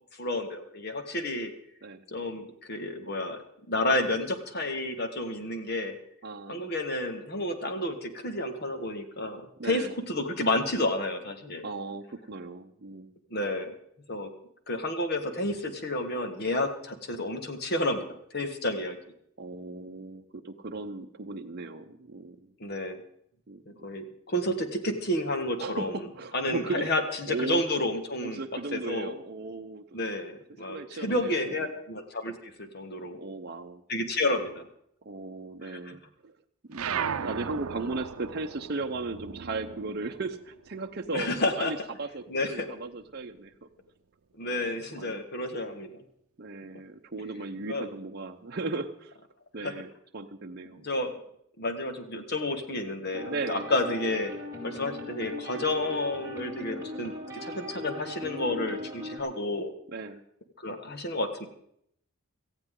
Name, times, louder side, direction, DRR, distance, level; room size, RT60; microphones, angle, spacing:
voice 1, 0.2-1.5 2.1-3.4 3.7-6.0 6.5-11.7 13.3-13.7 14.1-14.3 14.7-18.1 18.3-19.0 22.6-23.0 23.7-25.9 26.3-28.4 28.7-29.1 29.9-33.2 33.9-34.7 35.6-36.0 41.1-41.7 42.3-42.7 44.4-46.0 47.7-47.9 49.6-49.7 50.8-51.1 51.6-54.3 54.6-59.7 60.6-61.5, left 1 dB, 50° left, 6 dB, 1.7 m, -30 dB
voice 2, 6.2-6.7 9.6-9.9 11.6-13.1 19.4-22.5 23.5-23.8 25.6-26.9 27.3-27.6 28.2-30.0 30.7-31.8 33.2-33.8 35.0-36.4 36.6-41.3 41.6-43.7 44.4-44.7 45.0-45.2 46.4-49.2 49.5-50.9 53.3-53.6 59.9-60.2, right 3 dB, 50° right, 4 dB, 0.8 m, -37 dB
sound 1, 36.7-41.6 41.9-43.3, right 7 dB, 90° right, 0.6 m, -37 dB
sound 2, 53.1-59.2, left 1 dB, 15° right, 4.4 m, -39 dB
18.0 x 14.5 x 3.8 m, 0.71 s
head